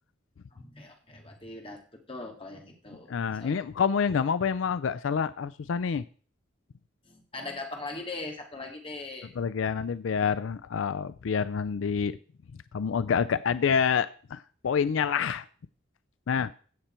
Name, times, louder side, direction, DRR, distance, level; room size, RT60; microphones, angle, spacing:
voice 1, 0.5-3.6 7.0-9.3, left 2 dB, 30° left, 2 dB, 2.1 m, -40 dB
voice 2, 3.1-6.0 9.4-12.2 12.7-15.5 16.3-16.5, left 6 dB, 85° left, 16 dB, 0.4 m, -27 dB
16.0 x 6.8 x 4.4 m, 0.43 s
head